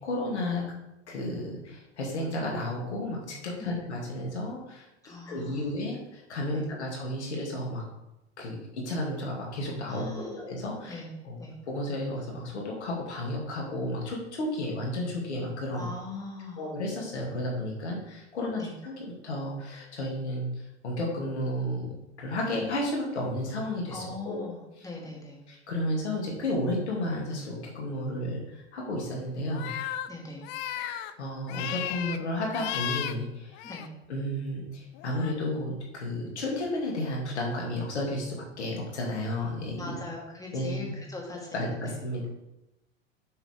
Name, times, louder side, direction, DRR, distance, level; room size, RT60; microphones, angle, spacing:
voice 1, 0.0-0.6 1.1-4.9 5.3-7.8 8.4-11.4 11.7-15.9 16.6-19.0 19.2-20.5 20.8-24.5 25.5-29.7 30.8-33.6 34.1-39.9 40.5-40.9 41.5-42.3, left 1 dB, 70° left, -2 dB, 2.5 m, -32 dB
voice 2, 5.0-5.7 6.5-6.7 9.9-10.4 10.9-11.1 11.4-11.5 15.7-16.7 18.5-18.7 23.9-25.4 30.1-30.4 33.6-33.9 39.8-42.0, left 2 dB, 10° left, -1 dB, 2.1 m, -41 dB
sound 1, 29.5-30.1 30.4-31.1 31.5-32.2 32.5-33.1 33.5-33.9 34.9-35.3, left 11 dB, 30° left, 0.4 m, -35 dB
6.9 x 6.0 x 3.7 m, 0.91 s
figure-of-eight pair, 80°, 35 cm